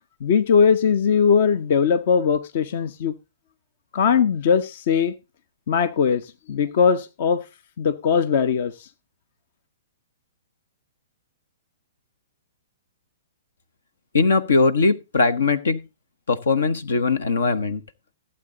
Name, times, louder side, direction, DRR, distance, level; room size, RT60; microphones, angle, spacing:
voice 1, 0.2-3.1 3.9-5.1 5.7-7.4 7.8-8.9, left 6 dB, 55° left, 0.8 m, -20 dB
voice 2, 14.1-15.8 16.3-17.8, left 4 dB, 75° left, 1.0 m, -20 dB
15.5 x 7.9 x 3.9 m
hypercardioid pair, 120°, 0 cm